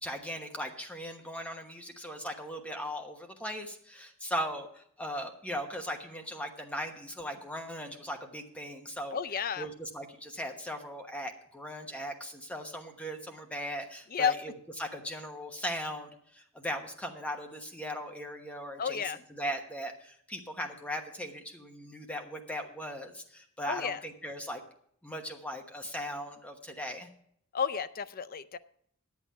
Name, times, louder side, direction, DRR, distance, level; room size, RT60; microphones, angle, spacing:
voice 1, 0.0-9.2 9.6-14.5 14.8-19.0 19.3-24.6 25.0-27.1, equal, 5° left, 3 dB, 1.1 m, -38 dB
voice 2, 9.1-9.7 14.1-14.3 18.8-19.2 23.7-24.0 27.5-28.6, left 7 dB, 45° left, 13 dB, 0.5 m, -31 dB
10.5 x 8.5 x 5.7 m, 0.66 s
head